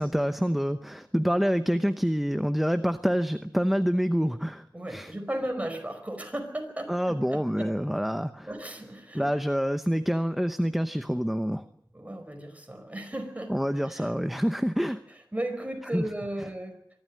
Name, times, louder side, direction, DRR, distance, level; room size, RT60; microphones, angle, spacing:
voice 1, 0.0-5.1 6.9-8.5 9.1-11.6 13.5-15.0 15.9-16.0, equal, ahead, 10 dB, 0.8 m, -27 dB
voice 2, 4.7-7.7 8.5-9.3 11.9-14.1 15.3-16.8, right 1 dB, 20° right, 5 dB, 5.0 m, -35 dB
24.0 x 13.0 x 9.6 m, 0.73 s
wide cardioid pair, 75°, 8 cm